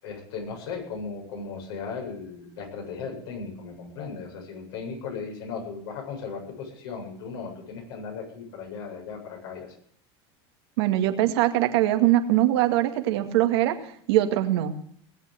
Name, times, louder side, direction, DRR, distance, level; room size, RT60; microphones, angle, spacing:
voice 1, 0.0-9.7, left 5 dB, 75° left, 1 dB, 8.0 m, -37 dB
voice 2, 10.8-13.7 14.1-14.7, right 14 dB, 75° right, 7 dB, 2.2 m, -22 dB
20.0 x 8.5 x 7.9 m, 0.62 s
supercardioid pair, 115°, 14 cm